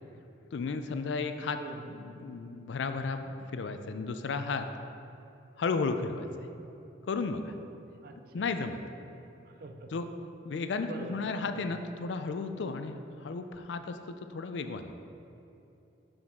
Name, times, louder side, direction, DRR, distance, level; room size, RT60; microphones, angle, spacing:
voice 1, 0.5-1.6 1.9-4.7 5.6-6.3 7.0-7.5 8.3-8.8 9.9-10.1 10.4-12.9 13.2-14.9, left 4 dB, 80° left, 8 dB, 0.4 m, -33 dB
voice 2, 1.6-1.9 8.0-8.5 9.4-9.9 10.8-11.8, right 2 dB, 55° right, 6 dB, 0.5 m, -45 dB
6.3 x 6.2 x 3.6 m, 2.9 s
head